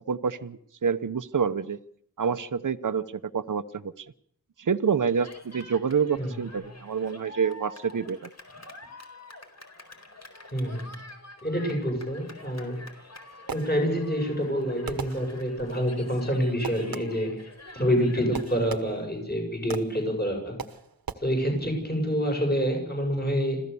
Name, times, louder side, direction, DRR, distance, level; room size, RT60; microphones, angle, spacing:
voice 1, 0.1-1.8 2.2-4.1 4.6-8.2, right 6 dB, 60° right, 10 dB, 0.9 m, -27 dB
Cheering, 5.0-18.7, left 2 dB, 50° left, 4.4 m, -47 dB
voice 2, 10.5-10.9 11.4-12.8 13.5-20.6 21.2-23.6, equal, 30° left, 2 dB, 7.6 m, -27 dB
Fireworks, 13.0-14.1 14.9-15.7 16.6-17.4 18.3-19.2 19.7-20.1 20.6-21.1, right 6 dB, 80° right, 1.4 m, -39 dB
26.0 x 16.0 x 7.0 m, 0.69 s
wide cardioid pair, 50°, 35 cm